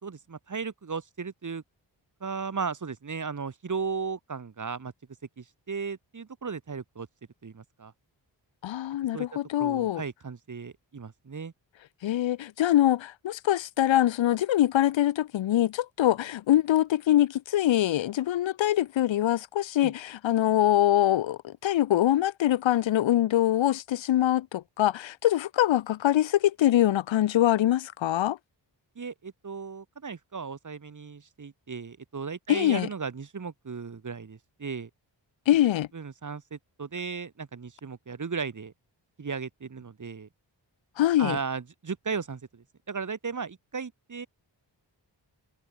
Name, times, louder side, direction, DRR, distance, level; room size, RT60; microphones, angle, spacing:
voice 1, 0.0-1.6 2.2-4.9 5.4-7.1 7.4-7.9 9.1-11.5 19.8-19.9 28.9-34.9 35.9-38.7 39.2-40.3 41.2-44.3, right 5 dB, 40° right, 1.6 m, -36 dB
voice 2, 8.6-10.0 12.0-28.4 32.5-32.9 35.5-35.9 41.0-41.4, left 13 dB, 90° left, 0.6 m, -24 dB
wide cardioid pair, 85°, 44 cm